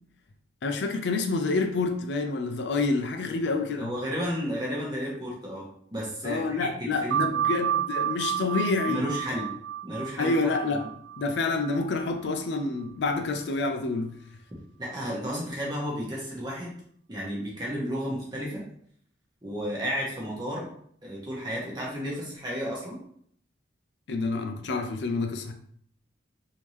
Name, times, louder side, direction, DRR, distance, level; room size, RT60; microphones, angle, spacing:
voice 1, 0.6-3.9 6.2-9.0 10.2-10.9 11.2-14.2 24.1-25.5, left 3 dB, 65° left, 5 dB, 0.4 m, -28 dB
voice 2, 3.8-7.3 8.9-9.5 9.8-10.3 10.7-10.9 14.8-16.7 17.1-18.6 19.4-20.7 21.0-23.0, equal, 20° right, -4 dB, 1.0 m, -32 dB
sound 1, 7.1-12.3, right 10 dB, 80° right, 0.4 m, -31 dB
3.5 x 2.8 x 3.1 m, 0.64 s
head